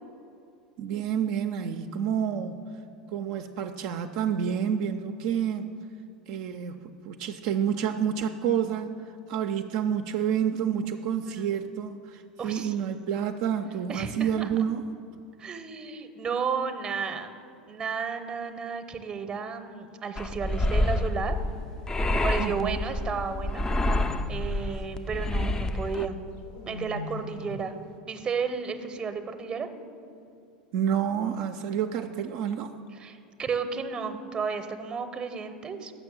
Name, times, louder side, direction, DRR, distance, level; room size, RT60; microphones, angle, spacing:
voice 1, 0.8-2.6 3.1-5.7 6.3-14.9 22.4-22.8 30.7-32.8, right 8 dB, 55° right, 6 dB, 0.4 m, -29 dB
voice 2, 12.4-12.7 13.9-14.5 15.4-17.3 17.7-21.4 22.1-23.7 24.3-26.2 26.7-27.8 28.1-29.7 33.0-35.9, right 5 dB, 20° right, 9 dB, 0.7 m, -33 dB
sound 1, 20.2-26.1, left 1 dB, 15° left, 0.4 m, -28 dB
sound 2, 21.3-22.1 23.4-24.7 26.1-27.8, left 3 dB, 55° left, 0.6 m, -42 dB
7.0 x 5.9 x 6.9 m, 2.5 s
figure-of-eight pair, 80°, 4 cm